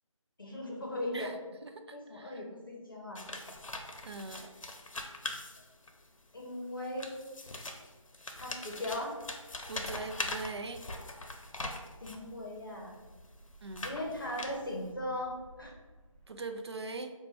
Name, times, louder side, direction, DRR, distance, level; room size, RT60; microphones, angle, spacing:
voice 1, 0.4-1.3 1.9-3.2 6.3-7.1 8.4-9.1 12.0-12.9 13.8-15.8, left 1 dB, 40° left, -1 dB, 0.7 m, -38 dB
voice 2, 1.6-2.4 4.0-4.5 9.7-10.8 13.6-13.9 16.3-17.1, right 3 dB, 50° right, 7 dB, 0.4 m, -41 dB
sound 1, 3.1-6.1 6.8-12.3 12.9-14.9, left 2 dB, 75° left, 0.6 m, -42 dB
sound 2, 11.0-16.4, right 1 dB, 20° right, 0.8 m, -59 dB
4.3 x 2.2 x 4.2 m, 1.3 s
figure-of-eight pair, 175°, 17 cm